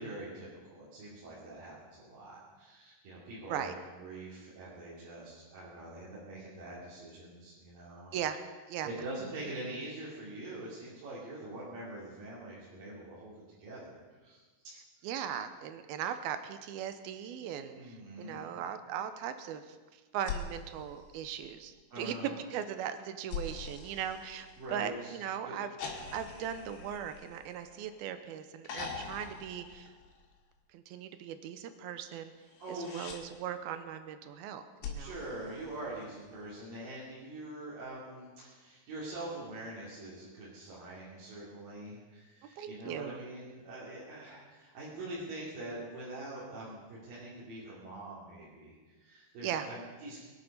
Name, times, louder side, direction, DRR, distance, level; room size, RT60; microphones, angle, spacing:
voice 1, 0.0-8.1 8.8-14.4 17.7-18.6 21.9-22.4 24.6-25.1 25.4-25.5 32.6-33.1 35.0-50.2, right 1 dB, 65° right, -8 dB, 4.5 m, -44 dB
voice 2, 15.0-19.8 20.1-25.7 26.1-29.9 30.7-32.3 32.7-35.2 42.6-43.2 49.4-49.7, right 9 dB, 90° right, 10 dB, 2.7 m, -38 dB
sound 1, 20.2-21.8 23.3-25.0 25.8-28.1 28.6-30.5 32.4-33.2 34.8-36.3 37.8-37.9, left 5 dB, 85° left, 3.9 m, -44 dB
22.5 x 10.5 x 5.4 m, 1.3 s
omnidirectional pair, 4.3 m